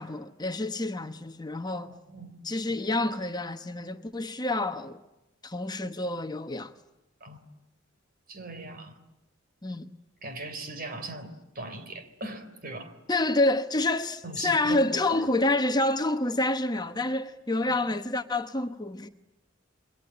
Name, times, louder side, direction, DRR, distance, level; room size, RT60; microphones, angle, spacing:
voice 1, 0.0-1.9 2.4-5.0 5.4-6.7 9.6-9.9 13.1-19.1, left 2 dB, 20° left, 1.1 m, -28 dB
voice 2, 1.8-2.3 7.2-7.4 8.3-9.0 10.2-12.9 14.2-14.8 15.1-15.5 17.6-17.8, right 2 dB, 45° right, 3.8 m, -40 dB
28.5 x 23.0 x 8.9 m
head